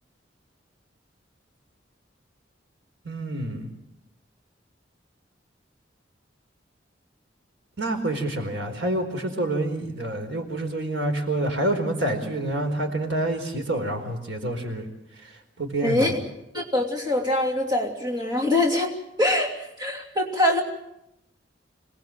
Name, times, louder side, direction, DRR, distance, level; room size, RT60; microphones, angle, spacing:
voice 1, 3.0-3.7 7.8-14.9 15.6-16.1, right 1 dB, 80° right, 5 dB, 4.5 m, -27 dB
voice 2, 15.8-16.2 16.5-18.9 19.2-19.5 19.8-20.6, left 1 dB, 25° right, 1 dB, 3.0 m, -23 dB
26.5 x 20.0 x 7.7 m, 0.86 s
head